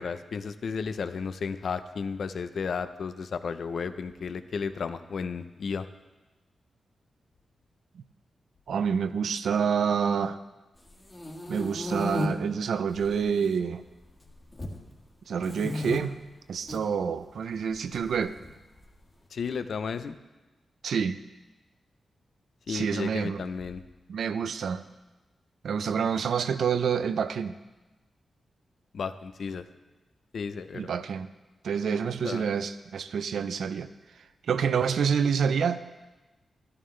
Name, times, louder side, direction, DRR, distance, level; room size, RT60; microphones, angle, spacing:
voice 1, 0.0-5.9 19.3-20.2 22.7-23.8 28.9-29.6 30.3-30.9 32.2-32.5, left 5 dB, 65° left, 11 dB, 0.6 m, -33 dB
voice 2, 8.7-10.4 11.5-13.8 15.3-16.2 16.5-18.3 20.8-21.2 22.7-23.4 24.1-24.8 25.6-27.5 30.7-31.3 31.6-33.9 34.5-36.0, right 6 dB, 80° right, 12 dB, 0.5 m, -27 dB
sound 1, 10.9-12.3 12.9-13.5 13.8-14.8 15.4-16.0 16.5-16.8 17.9-18.9, left 1 dB, 20° left, 1.8 m, -34 dB
13.0 x 12.5 x 3.3 m, 1.1 s
wide cardioid pair, 120°, 0 cm